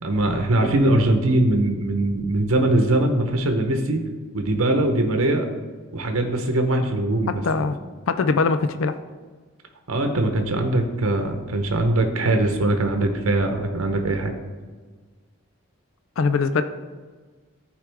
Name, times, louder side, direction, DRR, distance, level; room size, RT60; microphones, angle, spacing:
voice 1, 0.0-4.0 4.3-5.5 5.9-7.7 9.9-14.3, right 1 dB, 75° right, 4 dB, 0.9 m, -21 dB
voice 2, 7.4-7.8 8.1-9.0 16.2-16.6, left 4 dB, 70° left, 10 dB, 0.4 m, -21 dB
14.0 x 4.9 x 3.4 m, 1.4 s
head